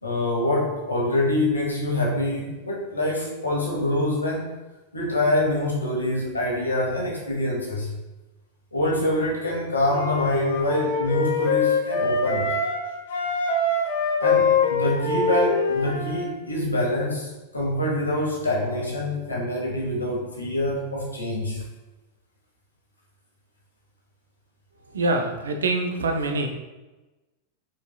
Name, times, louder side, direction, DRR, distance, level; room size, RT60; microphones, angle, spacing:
voice 1, 0.0-4.5 4.9-7.9 8.7-12.5 14.2-21.6, left 1 dB, 80° left, -3 dB, 1.3 m, -25 dB
Wind instrument woodwind instrument, 9.9-12.8 13.1-16.3, left 4 dB, 60° left, 0.7 m, -24 dB
voice 2, 24.9-26.5, right 2 dB, 70° right, 5 dB, 0.5 m, -24 dB
4.8 x 4.2 x 2.3 m, 1.1 s
figure-of-eight pair, 90°, 0 cm